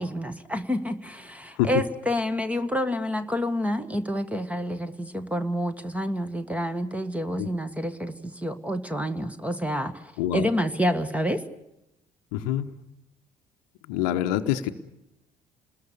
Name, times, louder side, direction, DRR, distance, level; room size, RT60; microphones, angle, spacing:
voice 1, 0.0-11.4, equal, 5° right, 10 dB, 1.7 m, -28 dB
voice 2, 12.3-12.7 13.9-14.7, left 12 dB, 65° left, 9 dB, 1.0 m, -25 dB
28.0 x 21.0 x 6.8 m, 0.90 s
figure-of-eight pair, 50°, 21 cm